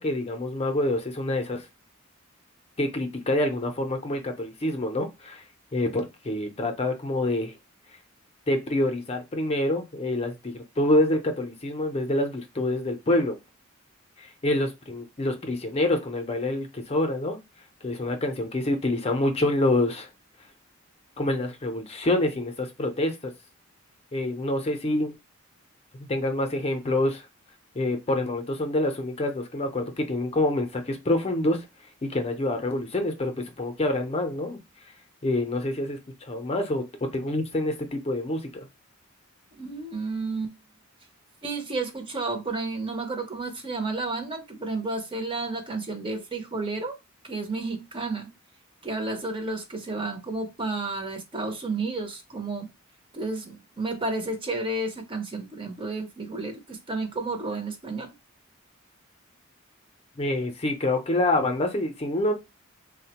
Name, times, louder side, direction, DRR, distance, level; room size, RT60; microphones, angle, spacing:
voice 1, 0.0-1.7 2.8-5.4 5.7-7.5 8.5-13.4 14.2-17.4 17.8-20.1 21.2-23.3 24.1-25.1 26.0-27.3 27.7-31.7 32.0-34.6 35.2-36.8 37.1-38.7 60.2-62.3, left 1 dB, 30° left, 0.5 m, -26 dB
voice 2, 39.6-40.5 41.4-46.9 47.2-48.3 48.8-52.7 53.1-58.1, right 3 dB, 25° right, 0.6 m, -31 dB
3.6 x 2.1 x 2.8 m
head